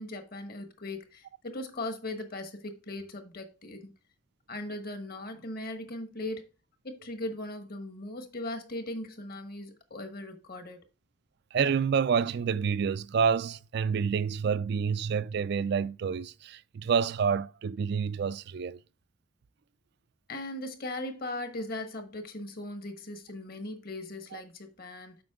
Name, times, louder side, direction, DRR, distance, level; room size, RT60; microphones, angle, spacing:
voice 1, 0.0-3.9 4.5-6.5 6.8-10.8 20.3-25.2, left 1 dB, 45° left, 1.2 m, -39 dB
voice 2, 11.5-18.8 24.3-24.4, right 6 dB, 50° right, 0.3 m, -28 dB
7.7 x 5.2 x 3.6 m
head